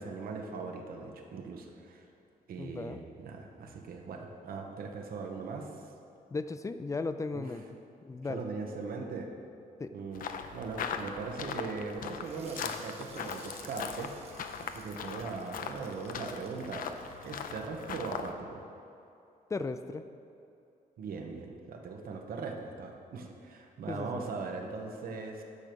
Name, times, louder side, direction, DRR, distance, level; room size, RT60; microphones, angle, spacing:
voice 1, 0.0-2.0 2.5-5.7 7.3-7.4 8.3-9.3 9.9-10.3 10.5-16.9 17.2-18.6 21.0-25.4, right 4 dB, 75° right, 2 dB, 1.1 m, -40 dB
voice 2, 2.6-3.0 6.3-7.6 8.0-8.5 9.8-9.9 19.5-20.1 23.9-24.2, left 3 dB, 20° left, 10 dB, 0.4 m, -36 dB
sound 1, 10.1-18.3, left 6 dB, 70° left, 0.6 m, -40 dB
sound 2, 12.2-17.7, right 3 dB, 45° right, 1.4 m, -55 dB
9.6 x 6.1 x 6.9 m, 2.7 s
wide cardioid pair, 140°, 15 cm